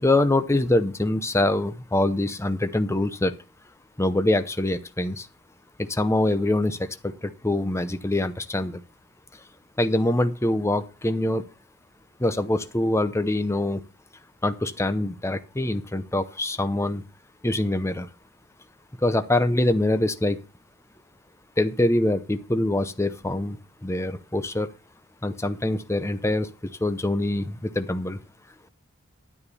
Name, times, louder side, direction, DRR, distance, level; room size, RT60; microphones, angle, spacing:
voice 1, 0.0-3.3 4.0-5.3 5.8-8.8 9.8-11.4 12.2-13.8 14.4-17.0 17.4-18.1 19.0-20.4 21.6-23.6 23.8-24.7 25.2-26.5 26.8-28.2, left 1 dB, 15° left, 10 dB, 0.7 m, -24 dB
10.5 x 9.8 x 4.1 m, 0.33 s
head